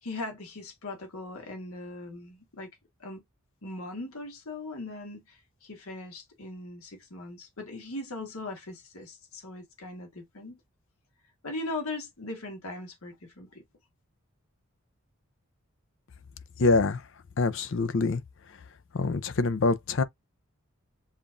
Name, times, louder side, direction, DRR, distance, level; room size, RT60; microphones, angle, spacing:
voice 1, 0.0-2.7 3.0-3.2 3.6-10.6 11.4-13.6, left 2 dB, 90° left, 1.4 m, -39 dB
voice 2, 16.6-17.0 17.4-18.2 18.9-20.0, left 3 dB, 60° left, 0.5 m, -25 dB
7.2 x 2.4 x 2.5 m
head